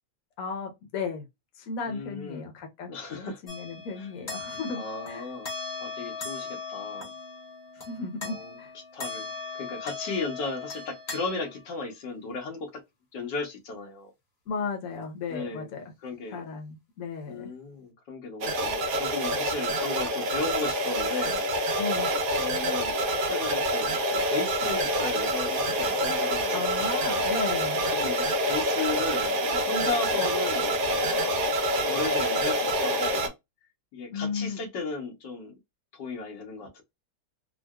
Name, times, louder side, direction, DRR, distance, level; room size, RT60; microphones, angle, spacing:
voice 1, 0.4-1.3 1.6-4.8 5.1-5.3 7.8-8.7 14.5-15.8 16.3-17.5 21.8-22.1 26.5-27.9 34.1-34.6, left 4 dB, 60° left, 1.2 m, -35 dB
voice 2, 1.9-2.5 2.9-3.4 4.0-4.5 4.7-5.5 5.8-7.1 8.2-12.7 13.1-14.1 15.3-15.7 16.0-16.4 17.3-21.5 22.3-26.5 27.9-31.4 31.8-33.3 33.9-35.5 35.9-36.8, left 3 dB, 85° left, 1.6 m, -35 dB
sound 1, 3.5-11.8, left 4 dB, 30° left, 0.9 m, -39 dB
sound 2, 18.4-33.3, right 1 dB, 70° right, 1.3 m, -27 dB
3.7 x 2.2 x 2.2 m
omnidirectional pair, 1.8 m